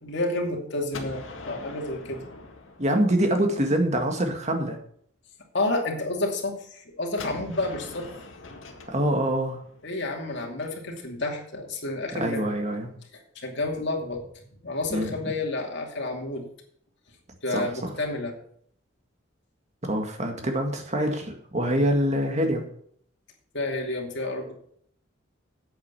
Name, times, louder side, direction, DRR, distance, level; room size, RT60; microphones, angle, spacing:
voice 1, 0.0-2.2 5.5-8.1 9.8-12.5 13.3-14.3 14.6-16.5 17.4-18.3 23.5-24.5, left 2 dB, 60° left, 0 dB, 2.6 m, -30 dB
Gunshot gunfire, 0.9-3.7 7.2-11.0, left 3 dB, 80° left, 1.8 m, -43 dB
voice 2, 2.8-4.8 8.9-9.6 12.1-12.9 14.9-15.1 17.5-17.9 19.8-22.7, right 1 dB, 35° right, 4 dB, 1.9 m, -25 dB
8.7 x 8.1 x 6.9 m, 0.64 s
head